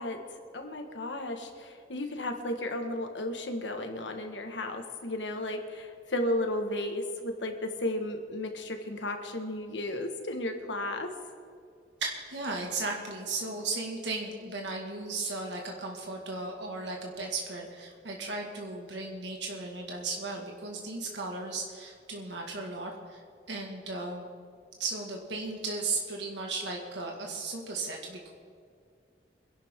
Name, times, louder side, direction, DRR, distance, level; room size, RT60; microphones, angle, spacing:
voice 1, 0.0-11.1, left 1 dB, 90° left, 4 dB, 1.7 m, -34 dB
voice 2, 12.0-23.2 23.5-24.3 24.8-28.3, right 3 dB, 80° right, 0 dB, 2.0 m, -36 dB
24.5 x 11.5 x 3.8 m, 2.3 s
head